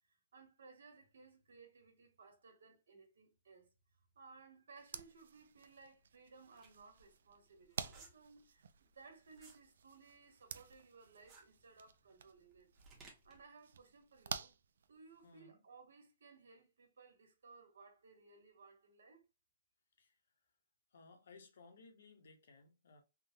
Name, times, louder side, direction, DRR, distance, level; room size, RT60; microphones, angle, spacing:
voice 1, 0.1-3.7 4.1-12.7 13.2-14.6 14.9-19.2, right 4 dB, 85° right, 1.3 m, -61 dB
sound 1, 4.8-15.4, right 6 dB, 70° right, 0.3 m, -51 dB
sound 2, 6.0-9.7 10.1-13.4, right 3 dB, 15° right, 0.8 m, -61 dB
voice 2, 15.2-15.6 20.0-20.1 20.9-23.0, left 3 dB, 70° left, 0.9 m, -61 dB
3.7 x 2.1 x 2.7 m
hypercardioid pair, 170°, 0 cm